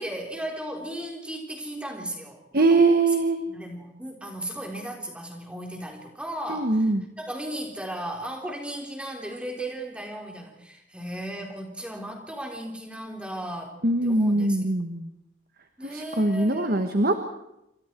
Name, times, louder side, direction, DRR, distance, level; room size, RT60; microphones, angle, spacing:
voice 1, 0.0-3.0 3.5-14.6 15.8-16.8, right 1 dB, 5° right, 2 dB, 3.8 m, -36 dB
voice 2, 2.5-3.4 6.5-7.0 13.8-15.1 15.8-17.2, right 2 dB, 50° right, 7 dB, 1.5 m, -22 dB
27.5 x 25.5 x 4.6 m, 0.85 s
head